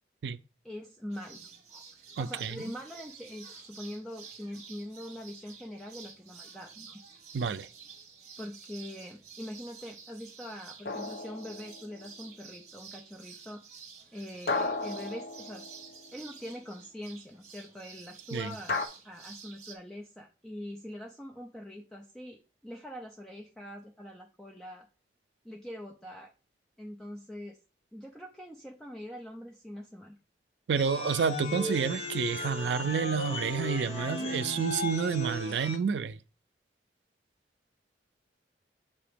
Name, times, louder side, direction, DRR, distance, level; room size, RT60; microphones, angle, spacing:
voice 1, 0.6-1.4 1.7-7.0 8.4-13.6 14.1-15.7 16.1-24.9 25.4-26.3 26.8-27.6 27.9-30.2, equal, 5° left, 0.5 m, -43 dB
sound 1, 1.1-19.7, right 6 dB, 40° right, 1.2 m, -50 dB
voice 2, 2.2-2.6 7.3-7.7 18.3-18.5 30.7-36.2, right 6 dB, 85° right, 0.4 m, -29 dB
sound 2, 10.9-12.1 14.5-16.1 18.7-18.9, left 3 dB, 60° left, 0.7 m, -34 dB
sound 3, 30.7-35.8, left 2 dB, 35° left, 0.8 m, -36 dB
6.8 x 2.9 x 5.0 m
head